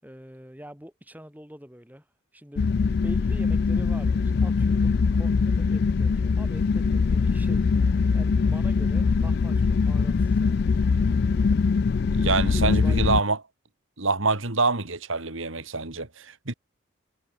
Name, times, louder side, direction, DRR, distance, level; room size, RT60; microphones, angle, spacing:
voice 1, 0.0-2.1 2.3-2.7 3.0-10.7 12.5-13.3, equal, 10° right, 6.3 m, -44 dB
sound 1, 2.6-13.2, left 5 dB, 50° left, 0.3 m, -22 dB
voice 2, 12.1-13.4 14.0-16.5, right 3 dB, 65° right, 2.7 m, -26 dB
head